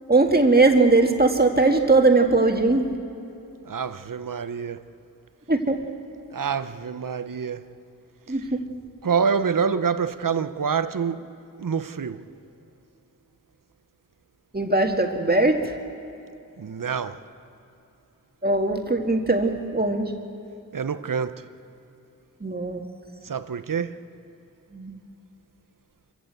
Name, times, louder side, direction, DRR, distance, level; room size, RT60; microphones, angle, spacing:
voice 1, 0.1-2.9 5.5-5.8 8.3-8.6 14.5-15.7 18.4-20.1 22.4-22.8 24.7-24.9, right 3 dB, 25° right, 1.9 m, -20 dB
voice 2, 3.6-4.8 6.3-7.8 8.3-8.5 9.0-11.3 11.6-12.2 16.6-17.2 20.7-21.5 23.2-24.0, right 6 dB, 70° right, 0.9 m, -27 dB
25.0 x 15.5 x 8.1 m
wide cardioid pair, 65°, 34 cm